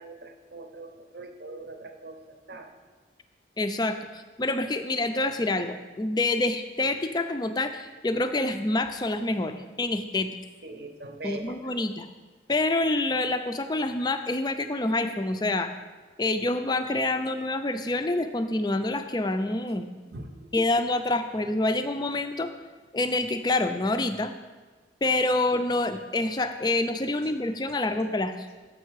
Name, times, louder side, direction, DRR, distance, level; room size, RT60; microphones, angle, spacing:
voice 1, 0.0-2.2 2.5-2.7 10.6-11.8 20.1-20.4, right 2 dB, 55° right, 6 dB, 0.7 m, -41 dB
voice 2, 3.6-10.3 11.2-12.1 12.5-15.7 16.2-19.9 20.5-22.5 22.9-24.3 25.0-28.5, left 2 dB, 20° left, 9 dB, 0.4 m, -27 dB
7.2 x 6.5 x 4.6 m, 1.3 s
head